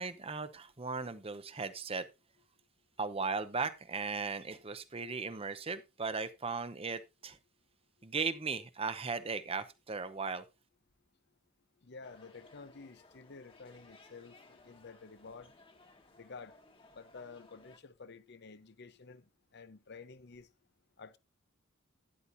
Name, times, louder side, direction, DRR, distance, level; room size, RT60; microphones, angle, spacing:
voice 1, 0.0-2.1 3.0-7.4 8.0-10.4, right 4 dB, 30° right, 0.8 m, -37 dB
voice 2, 11.8-15.5 16.2-16.6 16.9-19.2 19.5-20.5 21.0-21.2, left 4 dB, 55° left, 0.7 m, -51 dB
sound 1, 12.0-17.8, left 2 dB, 25° left, 1.5 m, -61 dB
12.5 x 10.0 x 2.7 m
head